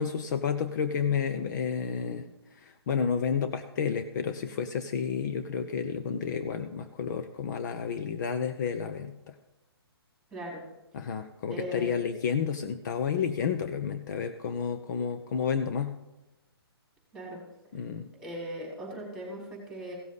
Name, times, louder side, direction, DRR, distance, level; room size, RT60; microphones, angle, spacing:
voice 1, 0.0-2.2 2.6-9.3 10.9-16.0 17.7-18.1, left 7 dB, 45° left, 8 dB, 0.8 m, -31 dB
voice 2, 10.3-10.6 11.5-11.9 17.1-17.4 18.2-20.0, right 1 dB, 5° right, -2 dB, 4.6 m, -38 dB
17.0 x 7.1 x 4.1 m, 0.99 s
hypercardioid pair, 145°, 13 cm